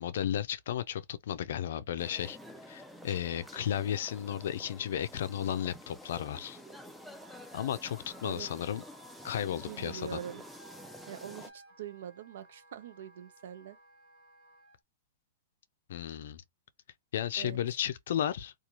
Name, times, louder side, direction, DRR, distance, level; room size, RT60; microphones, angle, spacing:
voice 1, 0.0-2.4 2.7-6.6 7.5-8.8 9.2-10.2 15.9-16.4 17.1-18.5, left 10 dB, 75° left, 0.4 m, -34 dB
sound 1, 2.0-11.5, left 1 dB, ahead, 0.4 m, -50 dB
Wind instrument woodwind instrument, 7.1-14.8, right 3 dB, 20° right, 1.5 m, -58 dB
voice 2, 9.7-10.4 11.1-13.8 17.4-17.6, right 9 dB, 75° right, 0.5 m, -43 dB
3.0 x 2.3 x 2.4 m
supercardioid pair, 150°, 0 cm